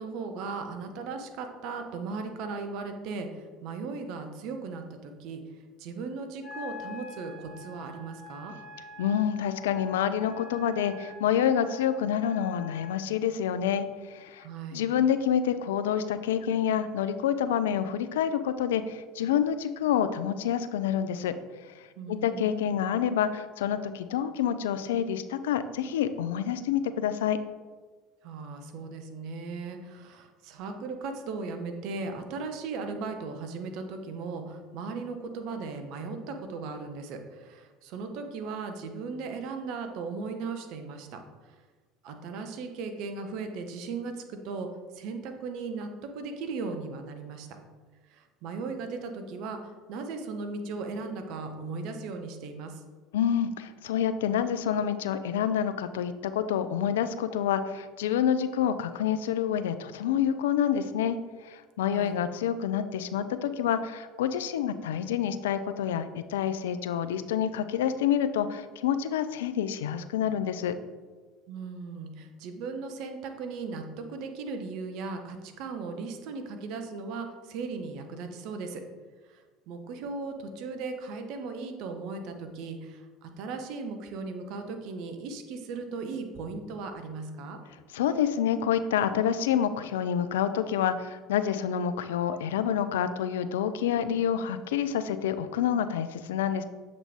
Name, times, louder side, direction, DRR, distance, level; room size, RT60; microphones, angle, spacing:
voice 1, 0.0-8.5 14.4-14.8 22.0-22.8 28.2-41.6 42.0-47.5 48.1-52.8 61.9-62.2 71.5-78.8 79.3-87.6, right 4 dB, 60° right, 6 dB, 0.7 m, -37 dB
Wind instrument woodwind instrument, 6.4-13.0, left 4 dB, 40° left, 1.7 m, -46 dB
voice 2, 9.0-14.5 14.7-21.3 22.1-27.4 53.1-61.2 61.4-70.8 87.9-96.6, left 9 dB, 75° left, 11 dB, 0.3 m, -28 dB
7.3 x 3.9 x 3.5 m, 1.4 s
hypercardioid pair, 70°, 0 cm